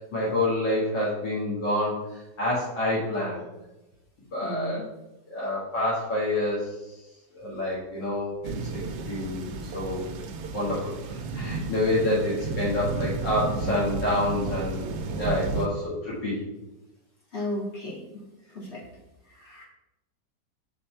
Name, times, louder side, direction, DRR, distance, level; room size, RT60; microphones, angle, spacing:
voice 1, 0.1-3.4 4.3-4.8 5.3-6.9 7.3-8.8 9.1-10.0 10.5-16.3, left 1 dB, 85° left, -8 dB, 2.4 m, -28 dB
voice 2, 4.4-4.9 15.5-15.7 17.3-18.2 18.5-18.8 19.3-19.6, equal, 40° left, -6 dB, 2.3 m, -34 dB
sound 1, 8.4-15.7, right 4 dB, 70° right, 1.1 m, -33 dB
6.4 x 5.2 x 4.4 m, 0.97 s
omnidirectional pair, 1.9 m